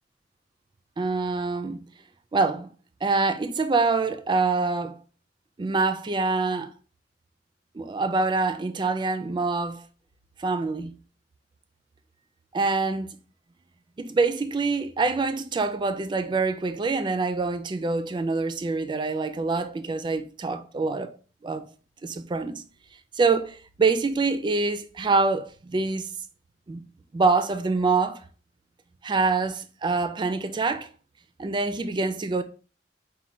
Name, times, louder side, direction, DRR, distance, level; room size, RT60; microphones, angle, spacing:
voice 1, 1.0-1.8 2.3-2.7 3.0-5.0 5.6-6.7 7.8-9.8 10.4-10.9 12.5-13.2 14.0-21.1 21.4-21.7 22.0-22.6 23.2-26.1 26.7-26.9 27.1-28.2 29.0-30.9 31.4-32.4, right 3 dB, 25° right, 0.3 m, -25 dB
4.1 x 2.2 x 4.4 m
head